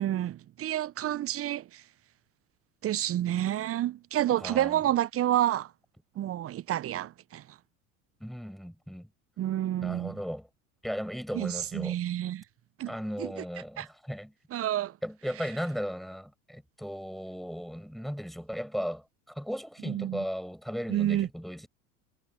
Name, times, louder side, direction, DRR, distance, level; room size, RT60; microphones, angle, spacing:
voice 1, 0.0-1.8 2.8-5.7 6.2-7.4 9.4-10.2 11.3-12.4 12.8-13.4 13.8-13.9 14.5-15.0 19.8-20.2 20.9-21.3, right 12 dB, 30° right, 1.0 m, -29 dB
voice 2, 4.4-4.8 8.2-9.1 9.8-10.5 10.8-12.0 12.9-14.3 15.0-21.7, equal, ahead, 7.3 m, -36 dB
figure-of-eight pair, 75°, 44 cm